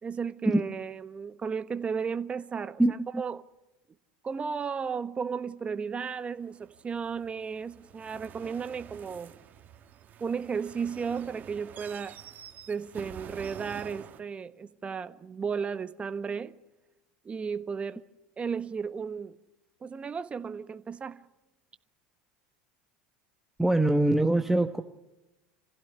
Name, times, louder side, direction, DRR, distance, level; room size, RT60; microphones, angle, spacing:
voice 1, 0.0-3.4 4.2-9.4 10.2-12.2 12.7-16.5 17.2-18.0 18.4-19.4 19.8-21.2, right 6 dB, 25° right, 1.2 m, -34 dB
sound 1, 6.4-14.2, right 9 dB, 40° right, 2.3 m, -48 dB
voice 2, 23.6-24.8, right 1 dB, 5° right, 1.2 m, -23 dB
26.5 x 16.0 x 9.6 m
hypercardioid pair, 85°, 5 cm